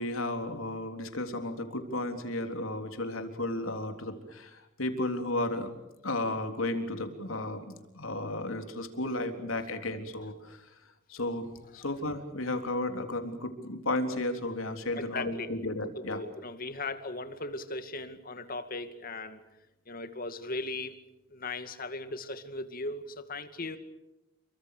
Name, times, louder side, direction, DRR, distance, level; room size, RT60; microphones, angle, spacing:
voice 1, 0.0-5.7 6.0-10.7 11.1-16.2, left 2 dB, 90° left, 6 dB, 3.6 m, -33 dB
voice 2, 14.9-15.5 16.1-19.4 19.9-21.0 21.3-23.8, left 2 dB, 45° left, 9 dB, 2.3 m, -38 dB
29.0 x 24.5 x 6.8 m, 0.92 s
head